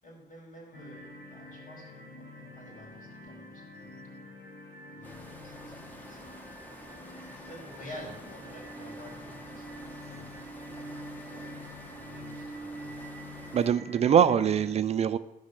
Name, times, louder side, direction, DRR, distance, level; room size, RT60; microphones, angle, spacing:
voice 1, 0.0-3.9 4.1-4.3 4.9-6.4 7.3-9.7 10.1-10.3 11.3-11.7 11.9-13.1 13.8-14.0, left 1 dB, 60° left, 4.8 m, -50 dB
sound 1, 0.7-14.7, equal, 85° left, 2.4 m, -46 dB
sound 2, 5.0-13.7, equal, 10° left, 1.2 m, -49 dB
voice 2, 13.5-15.2, right 8 dB, 45° right, 0.4 m, -23 dB
15.0 x 5.5 x 6.7 m
wide cardioid pair, 165°, 16 cm